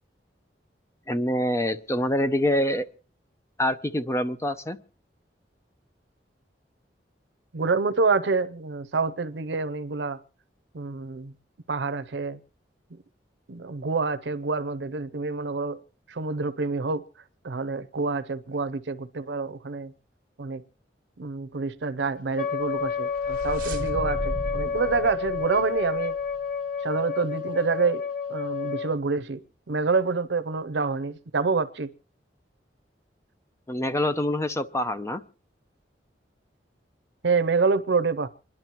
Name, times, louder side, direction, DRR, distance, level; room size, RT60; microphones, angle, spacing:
voice 1, 1.1-2.9 3.6-4.8 33.7-35.2, left 1 dB, 15° left, 0.6 m, -25 dB
voice 2, 7.5-10.2 10.7-11.3 11.7-12.4 13.5-15.8 16.1-17.0 17.4-19.9 20.4-20.6 21.2-26.2 26.8-28.0 28.3-29.4 29.7-31.9 37.2-38.3, right 4 dB, 85° right, 0.6 m, -27 dB
Wind instrument woodwind instrument, 22.4-28.9, left 6 dB, 55° left, 0.7 m, -30 dB
sound 1, 22.7-26.4, right 1 dB, 50° right, 1.4 m, -35 dB
27.5 x 11.0 x 3.0 m
head